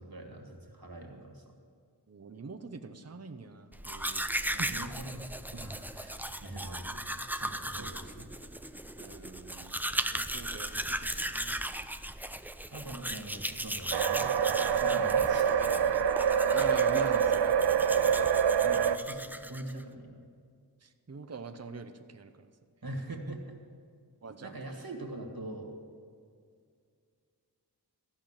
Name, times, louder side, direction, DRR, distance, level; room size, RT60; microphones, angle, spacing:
voice 1, 0.0-1.5 4.5-8.3 12.7-15.9 17.9-18.2 18.6-20.3 22.8-23.6 24.4-25.7, right 1 dB, 60° right, 2 dB, 1.9 m, -43 dB
voice 2, 2.1-4.2 4.6-4.7 7.7-7.9 8.9-11.8 16.5-17.9 20.8-22.5 24.2-24.5, right 4 dB, 40° right, 8 dB, 0.7 m, -44 dB
Domestic sounds home sounds, 3.7-19.8, right 1 dB, 5° right, 0.4 m, -37 dB
sound 1, 13.9-19.0, right 7 dB, 80° right, 0.5 m, -26 dB
14.0 x 5.8 x 8.8 m, 2.2 s
wide cardioid pair, 40°, 41 cm